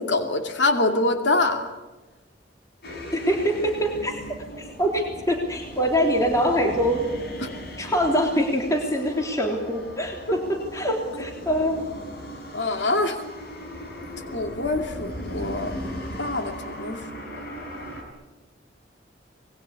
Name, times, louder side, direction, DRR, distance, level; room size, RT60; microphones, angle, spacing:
voice 1, 0.0-1.7 7.4-7.5 12.5-13.2 14.3-15.7 16.2-17.0, left 2 dB, 75° left, 5 dB, 2.6 m, -25 dB
sound 1, 2.8-18.0, equal, 60° left, 5.7 m, -38 dB
voice 2, 3.1-4.1 4.6-7.0 7.8-11.8, equal, 20° left, 1 dB, 3.3 m, -24 dB
27.0 x 20.5 x 8.4 m, 1.1 s
head